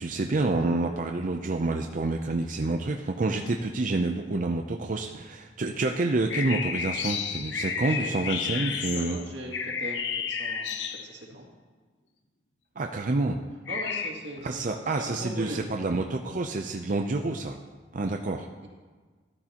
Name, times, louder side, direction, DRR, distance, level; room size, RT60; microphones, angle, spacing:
voice 1, 0.0-9.2 12.8-13.4 14.4-17.6 17.9-18.5, right 2 dB, 45° right, 3 dB, 0.5 m, -28 dB
sound 1, 6.3-11.3 13.7-14.1, left 6 dB, 90° left, 0.9 m, -31 dB
voice 2, 7.7-8.1 8.9-11.5 13.7-15.6, right 1 dB, 85° right, -2 dB, 2.4 m, -40 dB
13.5 x 12.0 x 2.9 m, 1.4 s
head